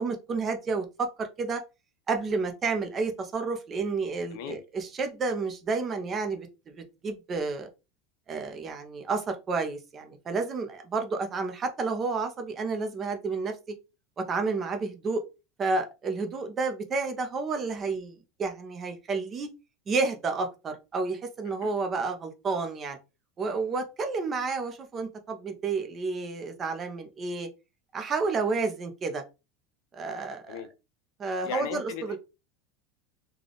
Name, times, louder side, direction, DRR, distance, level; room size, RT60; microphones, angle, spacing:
voice 1, 0.0-1.6 2.1-7.7 8.3-13.5 14.2-15.2 15.6-19.5 19.9-23.0 23.4-27.5 27.9-29.2 29.9-30.6 31.2-32.2, right 4 dB, 20° right, 0.6 m, -30 dB
voice 2, 4.3-4.6 21.6-21.7 30.5-30.7 31.4-32.2, left 9 dB, 65° left, 0.5 m, -37 dB
3.4 x 2.3 x 3.8 m
supercardioid pair, 165°, 0 cm